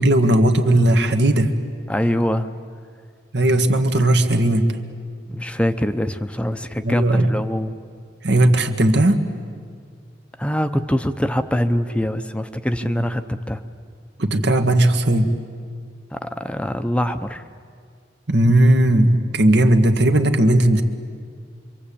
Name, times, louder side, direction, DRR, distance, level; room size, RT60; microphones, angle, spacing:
voice 1, 0.0-1.5 3.3-4.8 6.8-7.3 8.2-9.2 14.2-15.3 18.3-20.8, right 1 dB, 75° right, 6 dB, 1.8 m, -16 dB
voice 2, 1.9-2.5 5.3-7.7 10.4-13.6 16.1-17.4, equal, 5° left, 9 dB, 0.7 m, -23 dB
26.5 x 24.0 x 8.6 m, 2.1 s
head